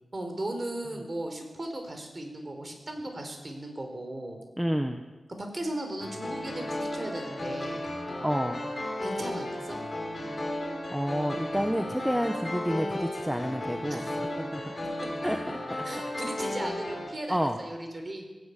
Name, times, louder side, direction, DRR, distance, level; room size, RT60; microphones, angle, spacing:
voice 1, 0.1-4.4 5.4-7.8 9.0-9.8 13.9-14.2 15.8-18.2, right 1 dB, 30° right, 4 dB, 4.4 m, -37 dB
voice 2, 4.6-5.0 8.2-8.6 10.9-14.7 15.2-15.8 17.3-17.6, equal, 5° right, 5 dB, 1.3 m, -29 dB
sound 1, 6.0-17.1, left 1 dB, 30° left, 4.9 m, -34 dB
17.5 x 17.5 x 8.6 m, 1.2 s
wide cardioid pair, 105°, 0 cm